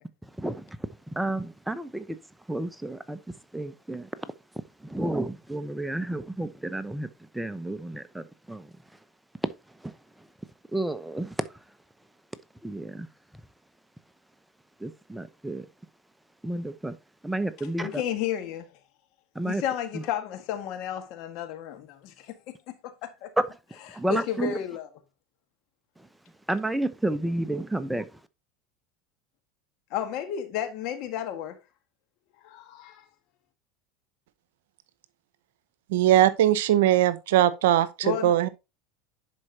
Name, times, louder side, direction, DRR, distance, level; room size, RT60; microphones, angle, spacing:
voice 1, 1.2-2.0 2.5-3.2 3.5-4.1 4.8-7.1 7.3-8.6 10.7-11.3 12.6-13.1 14.8-15.6 16.4-16.9 17.2-17.9 19.4-19.6 23.9-24.5 26.5-28.1, right 1 dB, 5° right, 0.8 m, -31 dB
voice 2, 17.6-18.7 19.5-22.4 22.8-23.3 23.9-24.9 29.9-31.6 32.4-33.0 38.0-38.4, left 10 dB, 60° left, 1.7 m, -32 dB
voice 3, 35.9-38.5, right 13 dB, 75° right, 0.7 m, -20 dB
10.5 x 4.6 x 2.8 m
hypercardioid pair, 90°, 0 cm